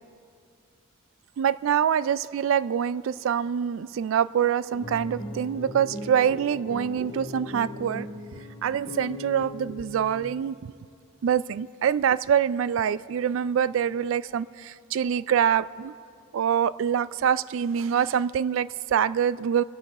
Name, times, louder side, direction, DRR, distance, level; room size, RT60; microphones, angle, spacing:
voice 1, 1.4-8.1 8.6-10.7 11.2-15.9 16.3-19.6, right 8 dB, 75° right, 17 dB, 0.3 m, -25 dB
sound 1, 4.7-10.2, left 1 dB, 50° left, 1.8 m, -39 dB
29.0 x 11.5 x 4.2 m, 2.3 s
head